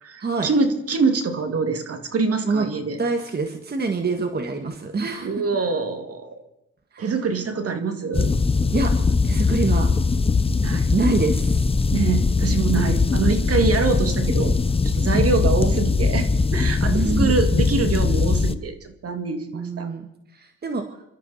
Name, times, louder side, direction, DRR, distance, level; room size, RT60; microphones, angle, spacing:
voice 1, 0.0-3.0 5.2-6.4 7.0-8.3 10.6-10.9 11.9-14.5 14.9-19.9, right 4 dB, 50° right, 7 dB, 2.3 m, -24 dB
voice 2, 3.0-5.3 6.9-7.1 8.7-8.9 9.2-9.9 10.9-11.6 16.9-17.4 19.5-21.0, right 3 dB, 35° right, 6 dB, 1.6 m, -25 dB
sound 1, 8.1-18.5, left 4 dB, 20° left, 0.7 m, -20 dB
26.5 x 13.0 x 4.2 m, 0.81 s
cardioid pair, 90°, 30 cm